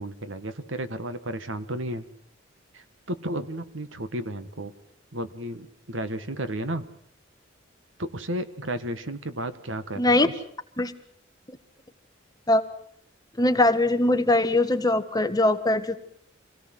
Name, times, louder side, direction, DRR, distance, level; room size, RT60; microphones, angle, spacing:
voice 1, 0.0-2.0 2.7-4.7 5.1-6.9 8.0-10.3, right 1 dB, 80° right, 11 dB, 1.7 m, -33 dB
voice 2, 10.0-10.3 10.8-10.9 11.5-11.6 12.5-12.6 13.4-15.9, left 2 dB, 20° left, 8 dB, 1.4 m, -21 dB
25.5 x 17.5 x 7.8 m, 0.69 s
head